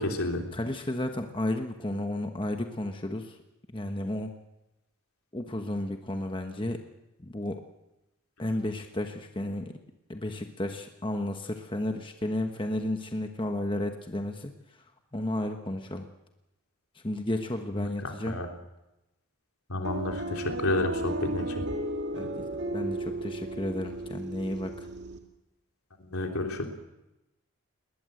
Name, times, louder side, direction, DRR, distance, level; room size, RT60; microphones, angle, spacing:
voice 1, 0.0-0.4 17.7-18.5 19.7-21.6 26.0-26.7, left 2 dB, 80° left, 3 dB, 3.4 m, -31 dB
voice 2, 0.5-3.4 3.7-4.3 5.3-6.8 7.2-7.6 8.4-9.7 10.1-14.5 15.1-16.1 17.0-18.4 22.1-22.4 22.7-24.9, left 1 dB, 20° left, 5 dB, 1.2 m, -32 dB
sound 1, 19.8-25.2, right 1 dB, 50° right, 2.5 m, -34 dB
20.5 x 19.5 x 7.8 m, 0.95 s
head